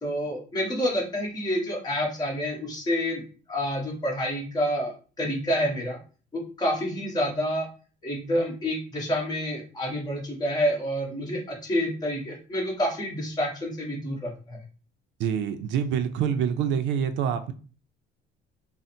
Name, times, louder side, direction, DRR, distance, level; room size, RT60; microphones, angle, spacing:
voice 1, 0.0-3.2 3.5-6.0 6.3-7.7 8.0-14.6, equal, 20° left, -1 dB, 1.2 m, -28 dB
voice 2, 15.2-17.5, right 8 dB, 75° right, 9 dB, 0.5 m, -26 dB
3.7 x 2.1 x 4.2 m, 0.38 s
cardioid pair, 150°, 19 cm